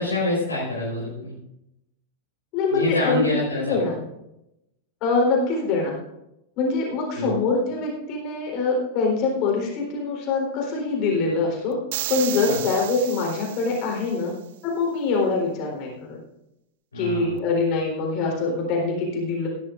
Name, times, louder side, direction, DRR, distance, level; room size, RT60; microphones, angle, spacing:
voice 1, 0.0-1.3 2.7-3.8 7.1-7.3 12.4-12.6 16.9-17.3, left 2 dB, 75° left, -5 dB, 4.7 m, -26 dB
voice 2, 2.5-4.0 5.0-6.0 6.6-11.8 12.1-14.3 14.6-16.2 16.9-19.5, left 3 dB, 40° left, -1 dB, 4.0 m, -24 dB
sound 1, 11.9-14.2, right 14 dB, 55° right, 0.4 m, -33 dB
17.5 x 12.0 x 2.6 m, 0.85 s
figure-of-eight pair, 90°, 0 cm